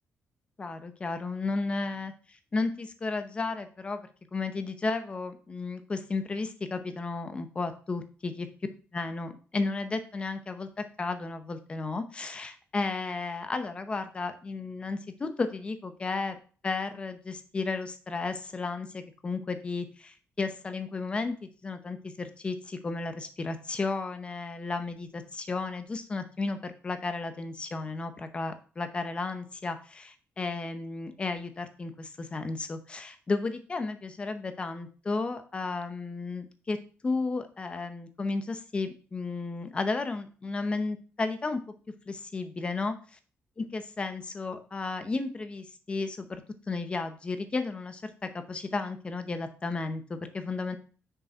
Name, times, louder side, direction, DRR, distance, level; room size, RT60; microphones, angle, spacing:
voice 1, 0.6-8.5 8.9-16.4 16.6-21.3 21.6-36.8 37.0-41.6 42.1-42.9 43.6-46.4 46.7-50.8, left 3 dB, 20° left, 9 dB, 0.8 m, -33 dB
6.2 x 5.3 x 4.3 m, 0.38 s
wide cardioid pair, 175°, 5 cm